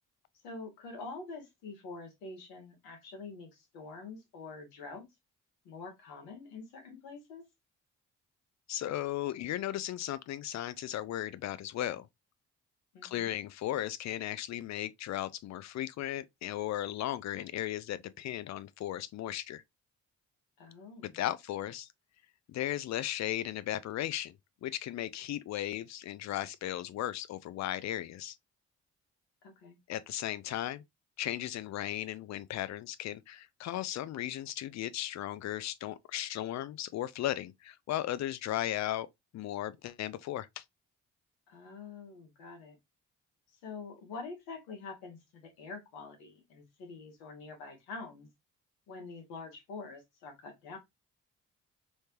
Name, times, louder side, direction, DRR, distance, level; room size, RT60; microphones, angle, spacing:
voice 1, 0.4-5.1 5.6-7.4 12.9-13.3 20.6-21.2 29.4-29.8 41.5-42.8 43.6-48.3 48.9-50.8, left 4 dB, 70° left, 1.3 m, -46 dB
voice 2, 8.7-12.1 13.0-19.6 21.1-21.9 22.5-24.4 24.6-28.4 29.9-30.8 31.2-39.1 39.3-40.6, left 13 dB, 45° left, 0.5 m, -36 dB
3.2 x 3.1 x 2.9 m
figure-of-eight pair, 40°, 37 cm